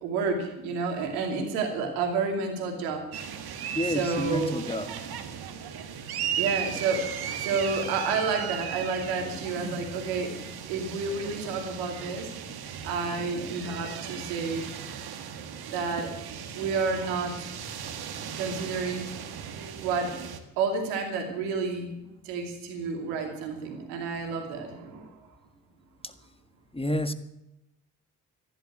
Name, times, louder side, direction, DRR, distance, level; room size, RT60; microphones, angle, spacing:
voice 1, 0.0-3.1 3.9-4.6 6.4-10.4 10.7-12.3 12.8-14.7 15.7-16.1 16.5-17.5 18.4-19.1 19.8-20.2 20.6-25.2, right 4 dB, 90° right, 4 dB, 2.7 m, -30 dB
sound 1, 3.1-20.4, right 8 dB, 70° right, 1.7 m, -37 dB
voice 2, 3.7-4.9 26.0-26.1 26.7-27.1, left 1 dB, 15° left, 10 dB, 1.6 m, -29 dB
15.0 x 11.5 x 7.7 m, 0.90 s
hypercardioid pair, 45°, 39 cm